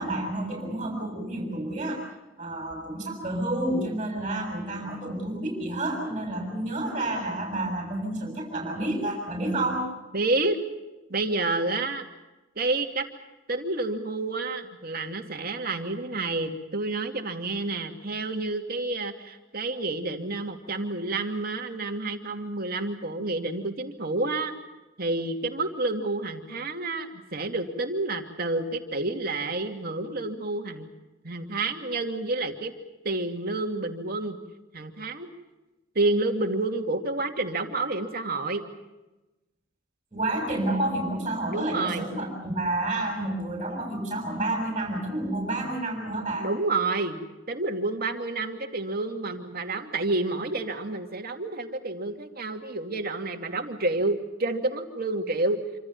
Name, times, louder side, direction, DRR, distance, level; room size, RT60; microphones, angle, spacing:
voice 1, 0.0-2.0 2.4-9.9 40.1-46.5, right 1 dB, 25° right, 0 dB, 6.7 m, -29 dB
voice 2, 10.1-10.6 11.1-12.1 12.6-13.1 13.5-24.5 25.0-30.8 31.2-32.7 33.0-34.4 34.7-35.3 35.9-38.6 41.5-42.1 46.4-47.2 47.5-55.6, right 2 dB, 50° right, 4 dB, 2.8 m, -29 dB
27.5 x 26.5 x 5.6 m, 1.0 s
head